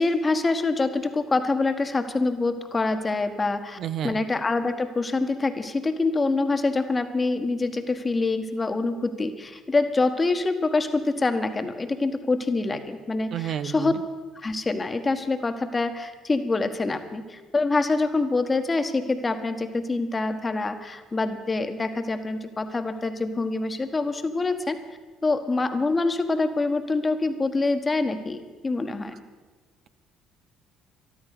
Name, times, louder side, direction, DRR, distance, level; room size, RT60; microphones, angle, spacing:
voice 1, 0.0-3.8 4.0-13.9 14.4-24.8 25.2-29.1, left 3 dB, 25° left, 8 dB, 1.5 m, -25 dB
voice 2, 3.8-4.2 13.3-14.0, right 9 dB, 55° right, 11 dB, 0.7 m, -31 dB
13.5 x 12.5 x 6.8 m, 1.4 s
hypercardioid pair, 55°, 0 cm